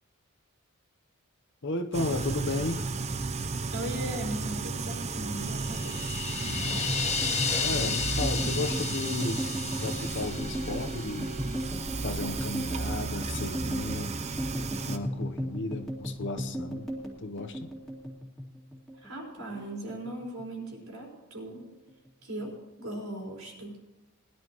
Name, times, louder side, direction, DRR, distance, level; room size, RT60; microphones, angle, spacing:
voice 1, 1.6-2.9 6.4-7.0 7.6-11.3 12.0-14.1 14.9-16.8 17.2-17.7, left 2 dB, 60° left, 7 dB, 0.9 m, -34 dB
sound 1, 1.9-15.0, right 3 dB, 30° right, 0.6 m, -33 dB
voice 2, 3.7-6.2 18.9-21.7 22.2-23.8, right 1 dB, 80° right, -3 dB, 4.5 m, -38 dB
sound 2, 5.5-11.7, left 6 dB, 30° left, 1.2 m, -34 dB
sound 3, 6.5-19.1 19.4-20.4 20.7-21.1 21.4-22.1, equal, ahead, 2.5 m, -37 dB
20.5 x 11.5 x 3.1 m, 1.1 s
head